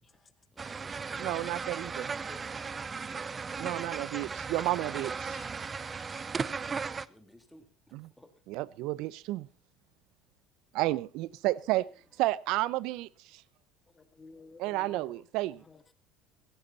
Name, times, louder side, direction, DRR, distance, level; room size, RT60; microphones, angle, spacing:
voice 1, 0.5-1.3 2.9-3.7 7.0-8.3 11.7-11.9, left 1 dB, 5° left, 3.1 m, -59 dB
sound 1, 0.6-7.0, right 5 dB, 25° right, 0.7 m, -36 dB
voice 2, 1.2-2.1 3.6-5.4 7.9-8.1 8.5-9.5 10.7-11.9 12.2-13.1 14.6-15.6, right 17 dB, 70° right, 0.7 m, -31 dB
voice 3, 2.3-2.6 5.3-5.5 6.1-6.4 14.0-15.2 15.7-15.8, left 4 dB, 20° left, 2.1 m, -53 dB
16.5 x 15.5 x 4.1 m
supercardioid pair, 110°, 0 cm